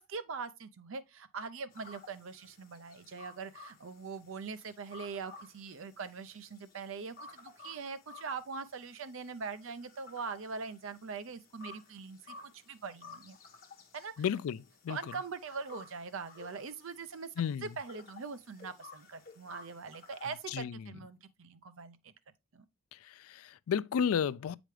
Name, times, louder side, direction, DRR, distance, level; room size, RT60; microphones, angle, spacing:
voice 1, 0.0-13.4 13.9-14.1 14.9-17.3 17.6-22.1 22.5-22.6, right 5 dB, 65° right, 0.5 m, -42 dB
sound 1, 1.7-20.5, left 3 dB, 40° left, 1.2 m, -55 dB
voice 2, 14.2-15.1 17.4-17.7 20.5-21.0 22.9-24.6, left 7 dB, 80° left, 0.3 m, -33 dB
7.6 x 5.0 x 3.2 m
head